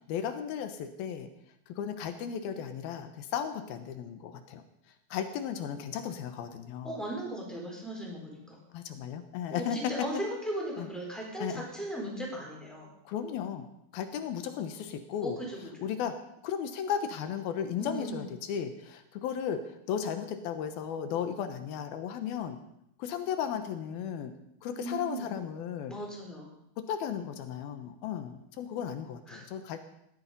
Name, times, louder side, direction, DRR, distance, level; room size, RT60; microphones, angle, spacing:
voice 1, 0.1-1.3 1.7-4.6 5.1-7.0 8.7-10.1 10.8-10.9 11.4-11.7 13.1-13.7 13.9-15.4 15.8-16.1 16.4-22.6 23.0-24.3 24.6-26.0 26.9-29.8, left 8 dB, 70° left, 8 dB, 2.7 m, -35 dB
voice 2, 6.8-8.6 9.5-12.9 15.2-15.6 17.8-18.3 24.7-25.3 25.9-26.5 29.3-29.4, right 1 dB, ahead, -3 dB, 4.4 m, -37 dB
17.5 x 13.0 x 5.3 m, 0.76 s
omnidirectional pair, 4.8 m